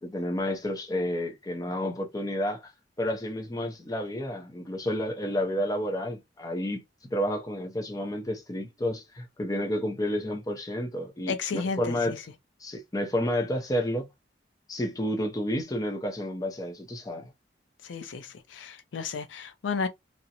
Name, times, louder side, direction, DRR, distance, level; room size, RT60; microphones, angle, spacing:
voice 1, 0.0-2.7 3.0-6.8 7.1-12.2 12.6-14.1 14.7-17.3, left 1 dB, 20° left, 0.5 m, -30 dB
voice 2, 11.3-12.2 17.8-19.9, left 5 dB, 80° left, 0.4 m, -33 dB
2.4 x 2.0 x 2.7 m
head